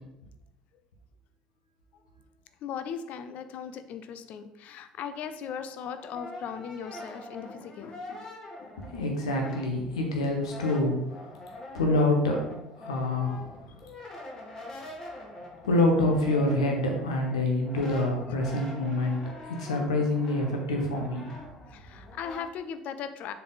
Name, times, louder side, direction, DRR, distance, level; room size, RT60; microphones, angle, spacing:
voice 1, 2.6-8.3 8.6-8.7 9.2-9.6 13.8-13.9 18.5-18.6 21.7-23.3, left 7 dB, 50° left, 10 dB, 0.6 m, -38 dB
Brass instrument, 5.6-10.0 10.3-22.5, left 1 dB, 20° left, 2.1 m, -44 dB
voice 2, 8.9-11.3 11.7-12.4 12.8-13.7 14.5-14.7 15.6-21.3, left 2 dB, 75° left, 2 dB, 1.3 m, -27 dB
7.0 x 4.8 x 3.9 m, 0.88 s
figure-of-eight pair, 55°, 3 cm